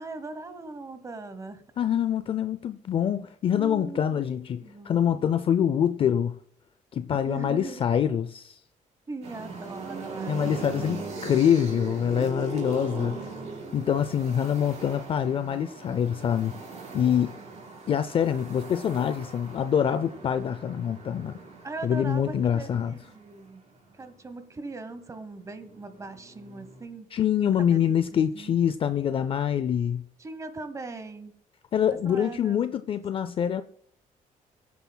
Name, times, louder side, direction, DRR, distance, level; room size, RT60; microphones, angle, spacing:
voice 1, 0.0-1.6 3.5-4.2 4.6-5.1 7.1-7.9 9.1-10.6 12.9-13.6 21.6-23.6 23.9-27.1 27.7-27.8 28.1-28.6 30.2-31.3 31.9-32.7, right 3 dB, 20° right, 1.1 m, -40 dB
voice 2, 1.8-6.4 6.9-8.6 10.3-13.1 13.7-16.5 16.9-17.4 17.9-21.3 21.8-22.9 27.1-30.0 31.7-33.6, left 9 dB, 40° left, 0.4 m, -25 dB
sound 1, 9.2-24.1 25.1-26.8, right 3 dB, 50° right, 4.5 m, -40 dB
22.5 x 9.3 x 2.3 m
cardioid pair, 160°, 14 cm